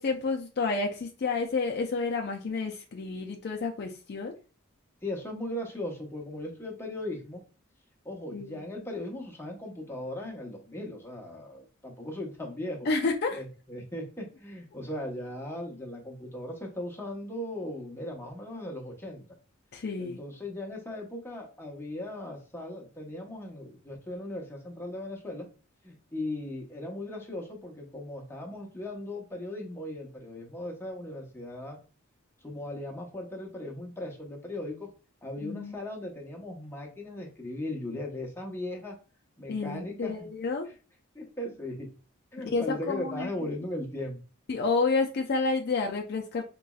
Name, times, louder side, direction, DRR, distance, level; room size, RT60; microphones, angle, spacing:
voice 1, 0.0-4.4 8.3-8.6 12.8-13.4 19.7-20.2 35.4-35.7 39.5-40.7 42.5-43.3 44.5-46.4, left 4 dB, 50° left, 2 dB, 0.4 m, -30 dB
voice 2, 5.0-7.4 8.0-12.9 13.3-19.3 20.0-25.5 25.8-31.8 32.4-34.9 35.2-39.0 39.4-40.3 40.7-40.8 41.1-41.9 42.3-44.2, left 1 dB, 10° left, -1 dB, 0.9 m, -38 dB
4.1 x 3.0 x 2.3 m, 0.35 s
head